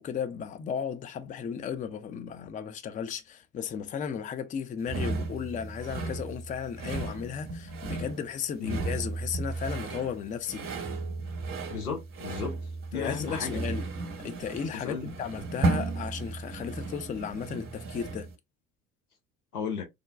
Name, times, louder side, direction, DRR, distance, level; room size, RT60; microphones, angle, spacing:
voice 1, 0.0-10.9 12.9-13.9 14.2-18.3, left 7 dB, 20° left, 0.4 m, -35 dB
sound 1, 4.9-18.3, right 3 dB, 30° right, 1.1 m, -34 dB
voice 2, 11.7-12.6 12.9-13.6 14.7-15.1 19.5-19.9, left 6 dB, 80° left, 0.9 m, -34 dB
4.9 x 2.2 x 2.2 m
figure-of-eight pair, 60°, 44 cm